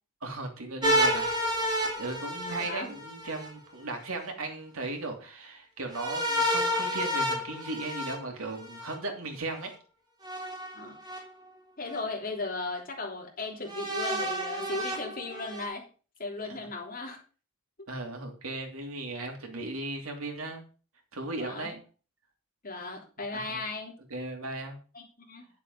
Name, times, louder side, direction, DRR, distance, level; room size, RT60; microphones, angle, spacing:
voice 1, 0.2-9.7 17.9-20.6 21.1-21.8 23.3-23.6 24.1-24.8, right 2 dB, 85° right, 2.9 m, -37 dB
sound 1, 0.8-3.5 5.9-8.9 10.2-11.2 11.9-12.0 13.7-15.7, equal, 20° right, 3.1 m, -30 dB
voice 2, 2.6-2.9 10.7-11.0 11.8-15.8 16.2-17.2 21.4-21.7 22.6-23.9 24.9-25.5, left 3 dB, 40° left, 3.3 m, -36 dB
10.5 x 7.3 x 5.4 m
head